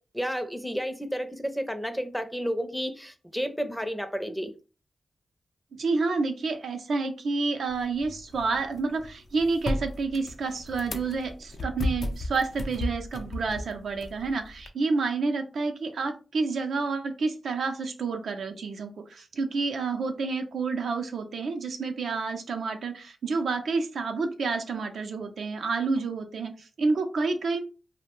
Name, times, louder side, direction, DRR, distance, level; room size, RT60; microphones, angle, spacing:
voice 1, 0.1-4.5, equal, 5° left, 0.5 m, -31 dB
voice 2, 5.7-27.6, right 4 dB, 85° right, 0.4 m, -29 dB
sound 1, 7.7-14.7, left 1 dB, 70° left, 0.4 m, -35 dB
2.5 x 2.1 x 2.9 m
cardioid pair, 75°, 0 cm